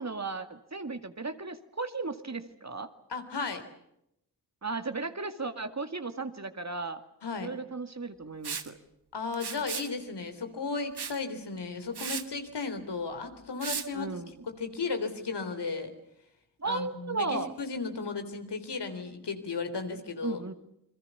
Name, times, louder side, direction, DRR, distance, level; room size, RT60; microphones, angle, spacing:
voice 1, 0.0-2.9 4.6-7.0 7.3-8.8 13.9-14.5 16.6-17.5 20.2-20.5, right 3 dB, 40° right, 9 dB, 2.3 m, -35 dB
voice 2, 3.1-3.6 7.2-7.5 9.1-14.1 14.6-15.9 16.6-20.4, left 4 dB, 80° left, 7 dB, 3.6 m, -35 dB
Liquid, 8.4-8.7 9.3-9.9 11.0-11.2 11.6-11.7 12.0-12.3 13.6-13.9, right 6 dB, 70° right, 1.7 m, -35 dB
28.5 x 22.5 x 7.0 m, 0.79 s
cardioid pair, 50°, 41 cm